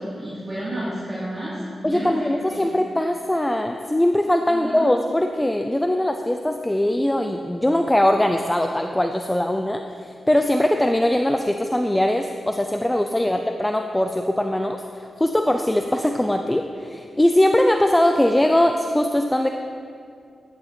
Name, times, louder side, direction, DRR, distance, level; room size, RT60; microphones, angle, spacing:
voice 1, 0.0-2.7 4.5-4.9 13.2-13.4, right 1 dB, 20° right, -11 dB, 3.2 m, -31 dB
voice 2, 1.8-19.5, left 1 dB, 10° left, 5 dB, 0.5 m, -21 dB
14.0 x 11.5 x 4.4 m, 2.4 s
wide cardioid pair, 145°, 0 cm